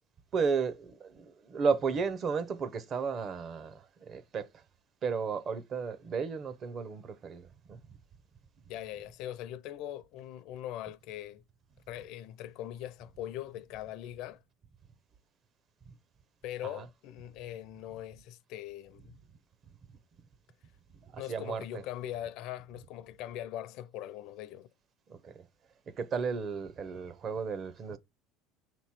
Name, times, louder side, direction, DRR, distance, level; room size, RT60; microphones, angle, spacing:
voice 1, 0.3-4.6 5.0-7.8 15.9-16.0 16.6-16.9 21.0-21.8 25.1-25.5 25.9-28.0, right 5 dB, 35° right, 0.7 m, -34 dB
voice 2, 8.7-11.4 11.9-14.4 16.4-19.2 21.2-24.7, left 12 dB, 65° left, 0.5 m, -41 dB
6.5 x 3.0 x 5.8 m
cardioid pair, 130°, 0 cm